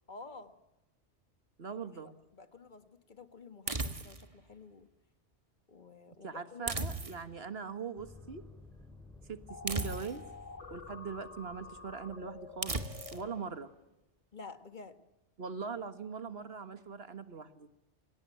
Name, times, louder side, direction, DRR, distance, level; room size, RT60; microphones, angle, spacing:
voice 1, 0.1-0.5 1.7-4.9 5.7-6.7 14.3-15.0, left 4 dB, 45° left, 11 dB, 1.8 m, -51 dB
voice 2, 1.6-2.2 6.2-8.4 9.3-10.2 10.7-12.8 13.1-13.7 15.4-17.7, right 5 dB, 60° right, 12 dB, 1.8 m, -41 dB
sound 1, 3.7-4.3 6.7-7.4 9.7-10.4 12.6-13.3, right 2 dB, 30° right, 1.5 m, -36 dB
sound 2, 8.0-13.5, left 2 dB, ahead, 4.9 m, -56 dB
sound 3, 9.5-13.4, left 4 dB, 80° left, 2.2 m, -49 dB
27.5 x 18.0 x 9.0 m, 0.98 s
omnidirectional pair, 1.2 m